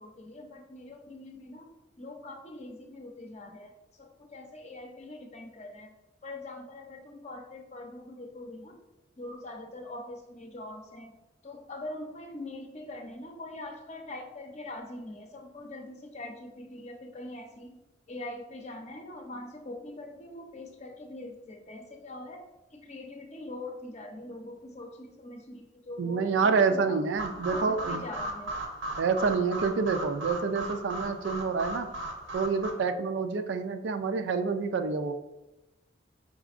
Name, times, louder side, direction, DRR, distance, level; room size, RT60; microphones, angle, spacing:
voice 1, 0.0-1.7 2.0-5.9 6.2-8.8 9.2-11.1 11.4-17.8 18.1-22.4 22.7-27.0 27.5-28.6, left 2 dB, 35° left, 3 dB, 0.6 m, -43 dB
voice 2, 26.0-28.0 29.0-31.9 32.3-35.2, right 5 dB, 70° right, 9 dB, 0.4 m, -28 dB
sound 1, 27.2-32.7, right 1 dB, 90° right, 0.8 m, -36 dB
4.8 x 4.3 x 2.4 m, 0.99 s
head